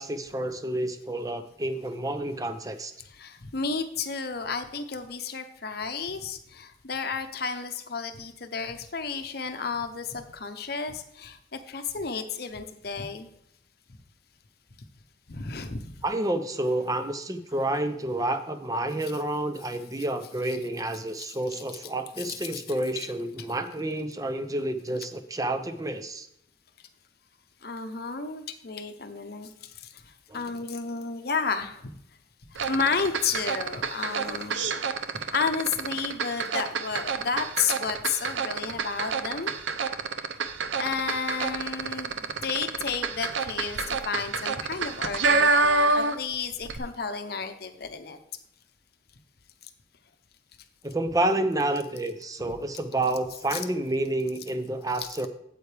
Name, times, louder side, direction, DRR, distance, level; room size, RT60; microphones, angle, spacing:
voice 1, 0.0-2.9 16.0-26.3 30.3-30.4 50.8-55.3, right 1 dB, 20° right, 9 dB, 0.6 m, -29 dB
voice 2, 3.1-13.3 15.3-15.9 21.3-21.4 22.2-22.6 23.0-23.1 27.6-29.7 30.3-31.8 32.6-34.8 35.3-39.5 40.8-48.2 53.5-53.6 55.0-55.1, left 5 dB, 55° left, 8 dB, 0.8 m, -32 dB
sound 1, 32.6-46.3 46.6-46.8, right 4 dB, 75° right, 0.6 m, -27 dB
9.0 x 8.3 x 3.4 m, 0.73 s
head